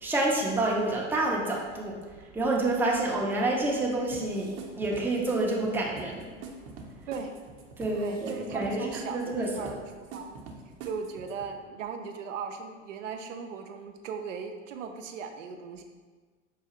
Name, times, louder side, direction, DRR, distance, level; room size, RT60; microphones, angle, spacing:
voice 1, 0.0-2.0 2.3-6.3 7.8-9.8, right 2 dB, 5° right, -2 dB, 0.5 m, -28 dB
sound 1, 4.1-11.5, right 4 dB, 45° right, 0.7 m, -45 dB
voice 2, 7.9-10.4 10.8-15.8, right 6 dB, 85° right, 5 dB, 0.5 m, -38 dB
4.7 x 2.4 x 2.9 m, 1.4 s
hypercardioid pair, 95°, 37 cm